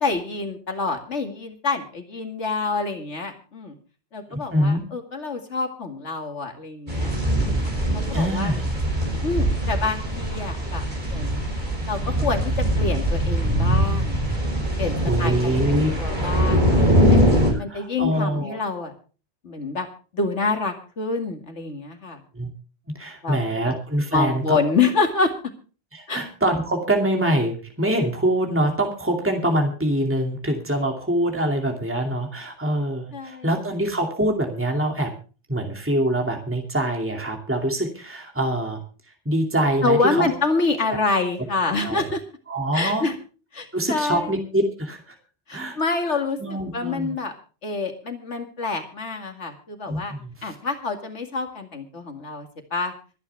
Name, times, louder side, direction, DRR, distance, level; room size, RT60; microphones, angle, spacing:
voice 1, 0.0-3.8 4.1-7.6 7.9-8.5 9.2-11.5 11.9-14.2 14.8-17.2 17.6-18.9 19.4-19.9 20.1-22.2 23.2-23.4 23.6-23.8 24.1-25.3 26.1-26.2 33.1-33.5 39.8-42.2 42.7-43.1 43.5-44.3 45.5-46.4 46.7-47.3 47.6-50.1 50.4-52.9, left 4 dB, 85° left, 5 dB, 2.5 m, -27 dB
voice 2, 4.3-4.8 8.1-8.6 15.0-15.9 17.5-18.6 22.3-22.5 22.9-24.7 25.9-35.1 35.5-38.8 39.2-40.3 40.9-41.0 41.8-42.1 42.5-43.1 43.7-45.1 45.5-45.8 46.4-47.1 49.9-50.5, right 1 dB, 10° right, 2 dB, 2.6 m, -24 dB
sound 1, 6.9-17.5, equal, 40° right, 5.9 m, -22 dB
25.5 x 9.6 x 3.4 m, 0.37 s
omnidirectional pair, 1.2 m